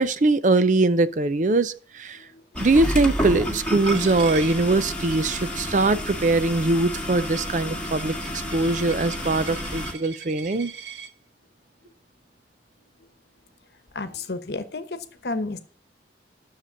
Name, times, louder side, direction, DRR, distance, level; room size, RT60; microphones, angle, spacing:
voice 1, 0.0-2.2 2.6-8.2 8.5-10.7, right 2 dB, 45° right, 0.5 m, -22 dB
sound 1, 2.5-9.9, equal, 5° left, 1.8 m, -30 dB
Coin (dropping), 3.8-11.1, right 8 dB, 80° right, 0.9 m, -42 dB
voice 2, 13.9-15.6, left 3 dB, 65° left, 1.0 m, -32 dB
10.0 x 6.7 x 5.6 m
head